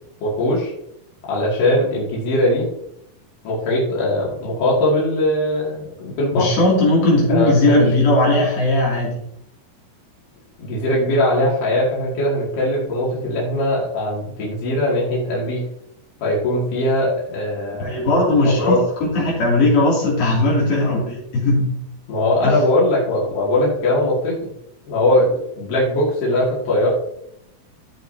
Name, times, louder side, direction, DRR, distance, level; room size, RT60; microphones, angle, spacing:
voice 1, 0.2-0.7 1.3-2.7 3.4-6.5 7.3-7.9 10.6-15.7 16.2-17.9 18.4-18.8 22.1-24.5 24.9-26.9, left 1 dB, 60° left, -5 dB, 3.9 m, -20 dB
voice 2, 6.3-9.2 17.8-18.8 19.1-21.7 22.4-22.6, left 2 dB, 80° left, -5 dB, 4.7 m, -17 dB
14.0 x 5.6 x 2.8 m, 0.77 s
omnidirectional pair, 4.3 m